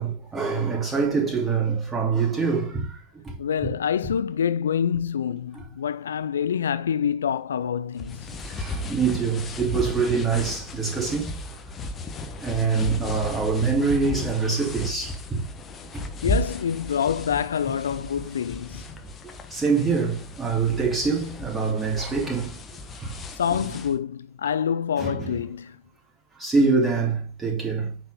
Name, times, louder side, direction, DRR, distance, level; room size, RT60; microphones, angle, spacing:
voice 1, 0.0-3.0 3.2-3.3 8.4-11.3 12.4-15.4 15.9-16.0 19.5-22.6 23.0-23.2 25.0-25.3 26.4-27.9, right 5 dB, 15° right, 3.0 m, -25 dB
voice 2, 3.4-8.3 16.2-18.9 23.4-25.8, left 8 dB, 65° left, 0.3 m, -26 dB
sound 1, 8.0-24.0, left 1 dB, 20° left, 1.2 m, -35 dB
8.8 x 4.4 x 5.1 m
figure-of-eight pair, 90°, 0 cm